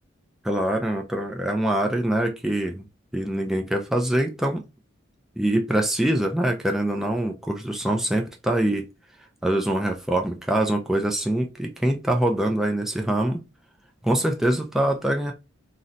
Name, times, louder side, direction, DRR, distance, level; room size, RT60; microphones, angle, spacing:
voice 1, 0.4-2.9 3.1-4.6 5.4-8.9 9.4-13.4 14.0-15.3, right 1 dB, ahead, 0.3 m, -24 dB
2.6 x 2.1 x 3.8 m
head